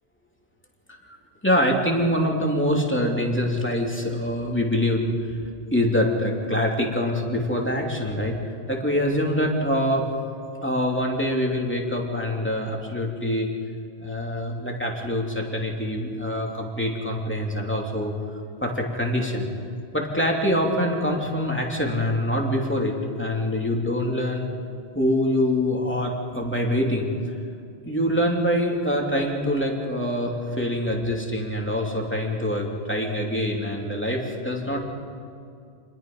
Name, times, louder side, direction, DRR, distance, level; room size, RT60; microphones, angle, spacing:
voice 1, 1.4-5.4 5.7-8.4 8.7-10.1 10.6-13.5 14.0-18.1 18.6-19.5 19.9-24.5 24.9-27.1 27.9-34.8, equal, 10° left, -1 dB, 2.9 m, -25 dB
28.0 x 21.0 x 5.5 m, 2.5 s
omnidirectional pair, 1.1 m